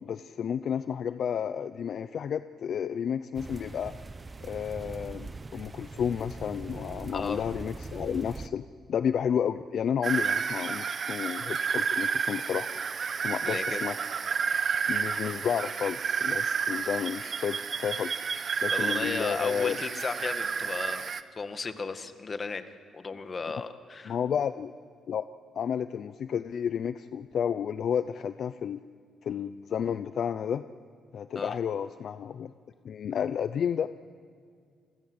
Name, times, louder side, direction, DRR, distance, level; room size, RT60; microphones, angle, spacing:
voice 1, 0.0-3.9 4.4-8.6 8.9-12.7 13.2-14.0 14.9-18.2 18.6-19.8 24.1-24.7 25.1-25.2 25.5-28.8 29.2-30.6 31.1-32.5 32.8-33.9, left 8 dB, 60° left, 12 dB, 0.7 m, -31 dB
sound 1, 3.3-8.5, right 3 dB, 25° right, 0.9 m, -42 dB
voice 2, 7.1-7.5 13.4-13.8 18.7-22.6 22.9-24.2 31.3-31.6, left 4 dB, 35° left, 9 dB, 1.9 m, -35 dB
sound 2, 10.0-21.2, right 6 dB, 50° right, 1.1 m, -31 dB
29.5 x 21.0 x 8.1 m, 2.2 s
cardioid pair, 90°, 0 cm